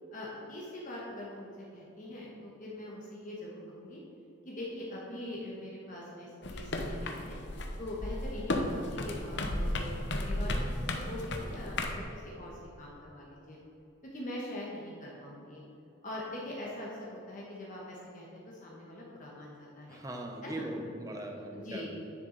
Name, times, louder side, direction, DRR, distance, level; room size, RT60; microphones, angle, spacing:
voice 1, 0.1-4.0 4.4-7.4 7.8-13.6 14.1-15.6 16.0-20.0 20.4-20.7 21.5-21.9, left 1 dB, 40° left, -4 dB, 1.3 m, -43 dB
sound 1, 6.4-12.0, left 1 dB, 55° left, 0.8 m, -34 dB
voice 2, 19.9-21.9, right 1 dB, 15° right, 2 dB, 0.9 m, -40 dB
10.0 x 6.9 x 4.0 m, 2.8 s
head